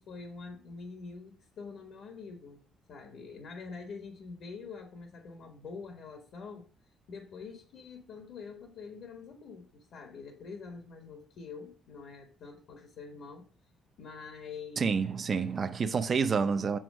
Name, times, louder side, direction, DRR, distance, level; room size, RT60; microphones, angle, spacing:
voice 1, 0.0-2.6 2.9-6.7 7.1-13.5 14.0-14.9 15.3-16.0, left 5 dB, 55° left, 1.3 m, -45 dB
voice 2, 14.8-16.8, right 5 dB, 30° right, 0.6 m, -28 dB
7.8 x 4.5 x 6.2 m
cardioid pair, 160°, 0 cm